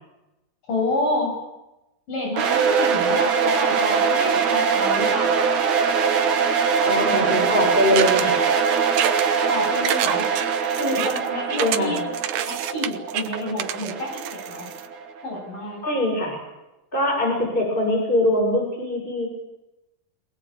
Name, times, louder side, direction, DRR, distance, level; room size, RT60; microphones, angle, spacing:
voice 1, 0.7-1.4 2.1-5.5 9.5-10.3 10.8-12.0 12.4-14.7 15.2-15.8, left 1 dB, 65° left, 0 dB, 9.4 m, -28 dB
sound 1, 2.4-15.2, right 6 dB, 55° right, 3.3 m, -22 dB
voice 2, 6.8-8.4 11.6-12.0 15.8-16.4 16.9-19.3, left 1 dB, 15° left, 0 dB, 7.2 m, -22 dB
sound 2, 8.0-14.9, right 11 dB, 80° right, 2.7 m, -28 dB
23.5 x 19.5 x 9.0 m, 0.95 s
omnidirectional pair, 4.1 m